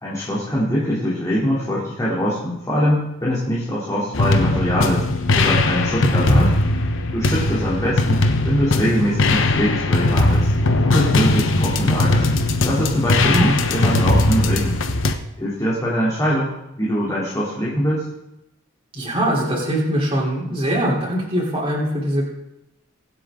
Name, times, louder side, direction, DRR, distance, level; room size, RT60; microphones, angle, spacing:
voice 1, 0.0-5.0 5.3-6.5 7.1-10.5 10.8-12.2 12.6-14.8 15.4-18.1, equal, 15° left, -7 dB, 3.1 m, -23 dB
sound 1, 4.1-15.1, left 2 dB, 65° left, 1.0 m, -19 dB
voice 2, 13.2-13.9 18.9-22.3, right 1 dB, 25° right, -4 dB, 3.5 m, -22 dB
23.0 x 8.0 x 3.8 m, 0.89 s
head